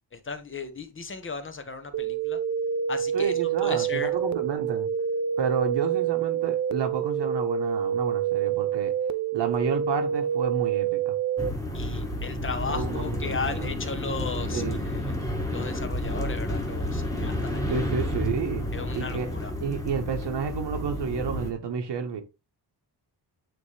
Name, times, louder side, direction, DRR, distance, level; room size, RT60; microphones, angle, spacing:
voice 1, 0.1-2.4 2.9-3.3 3.6-4.1 11.7-15.1 15.5-17.8 18.7-19.5, left 4 dB, 30° left, 0.8 m, -35 dB
sound 1, 1.9-11.5, right 8 dB, 45° right, 0.5 m, -27 dB
voice 2, 3.1-4.9 5.4-8.9 9.3-11.2 12.7-13.7 14.5-14.8 17.7-18.6 18.9-19.3 19.6-22.2, right 6 dB, 85° right, 1.3 m, -30 dB
sound 2, 11.4-21.5, left 1 dB, 10° left, 1.4 m, -31 dB
9.0 x 3.5 x 3.3 m
wide cardioid pair, 150°, 40 cm